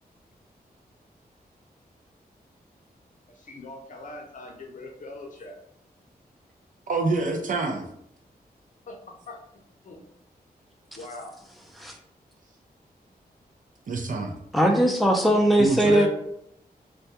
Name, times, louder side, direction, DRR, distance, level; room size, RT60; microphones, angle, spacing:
voice 1, 3.3-5.6 8.9-9.0 9.3-9.4 9.8-10.0 11.0-11.4, left 2 dB, 55° left, 1 dB, 0.6 m, -41 dB
voice 2, 6.9-7.9 13.9-14.3 15.6-16.1, right 3 dB, 55° right, 2 dB, 0.5 m, -26 dB
voice 3, 14.5-16.1, right 1 dB, ahead, 1 dB, 0.4 m, -20 dB
2.2 x 2.2 x 2.7 m, 0.70 s
wide cardioid pair, 95°, 16 cm